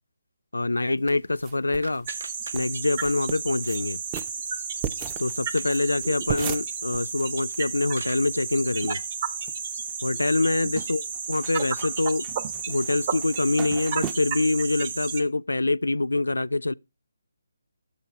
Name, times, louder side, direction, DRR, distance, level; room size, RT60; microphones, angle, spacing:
voice 1, 0.5-2.1 2.5-4.0 5.2-9.0 10.0-11.0 11.3-12.3 12.7-16.7, left 2 dB, 85° left, 0.3 m, -25 dB
sound 1, 1.1-2.0 2.2-2.3 2.5-2.6 2.9-3.8 4.1-7.6 7.9-8.0 8.2-8.9 9.3-9.9 10.2-14.1, right 8 dB, 20° right, 0.4 m, -37 dB
sound 2, 1.1-3.1 3.4-4.5 4.9-5.0 5.3-5.7 6.2-6.7 7.4-8.4, right 3 dB, 70° right, 0.6 m, -44 dB
sound 3, 2.0-15.2, right 6 dB, 40° right, 0.9 m, -33 dB
6.6 x 4.7 x 5.8 m
figure-of-eight pair, 155°, 0 cm